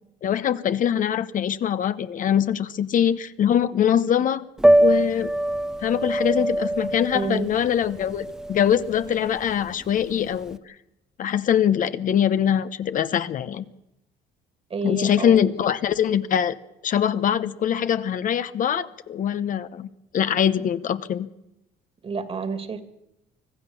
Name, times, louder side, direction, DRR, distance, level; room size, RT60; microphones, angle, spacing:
voice 1, 0.2-4.4 4.8-5.3 5.8-10.7 11.2-13.6 14.8-16.5 16.8-21.3, left 9 dB, 50° left, 12 dB, 1.0 m, -23 dB
Piano, 4.6-10.5, right 1 dB, 5° right, 0.8 m, -23 dB
voice 2, 7.1-7.5 14.7-15.4 22.0-22.8, right 4 dB, 35° right, 10 dB, 2.3 m, -29 dB
25.0 x 15.5 x 7.1 m, 0.86 s
cardioid pair, 110°, 17 cm